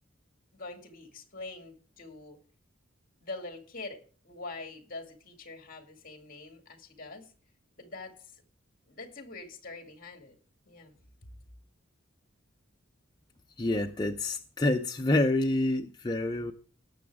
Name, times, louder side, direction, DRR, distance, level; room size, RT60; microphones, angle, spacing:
voice 1, 0.5-2.4 3.2-7.3 7.8-8.2 8.9-10.4 10.7-11.0 11.2-11.3, left 3 dB, 45° left, 2.2 m, -44 dB
voice 2, 13.6-16.5, left 2 dB, 20° left, 0.5 m, -27 dB
18.0 x 7.0 x 3.5 m
head